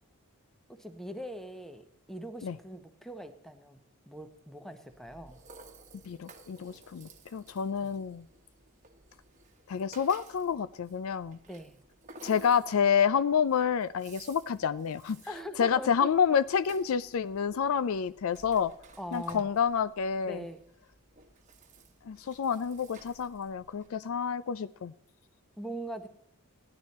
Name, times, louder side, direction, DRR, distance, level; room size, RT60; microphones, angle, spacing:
voice 1, 0.7-3.8 4.1-5.4 7.8-7.9 11.5-11.8 15.3-16.1 19.0-19.5 20.2-20.6 25.6-26.1, equal, ahead, 8 dB, 0.9 m, -42 dB
Rattle (instrument), 4.9-23.9, right 2 dB, 35° right, 1.3 m, -55 dB
voice 2, 6.0-8.3 9.7-11.4 12.2-15.2 15.6-18.7 19.1-20.4 22.1-24.9, left 7 dB, 65° left, 16 dB, 0.4 m, -28 dB
15.5 x 10.5 x 4.2 m, 0.75 s
head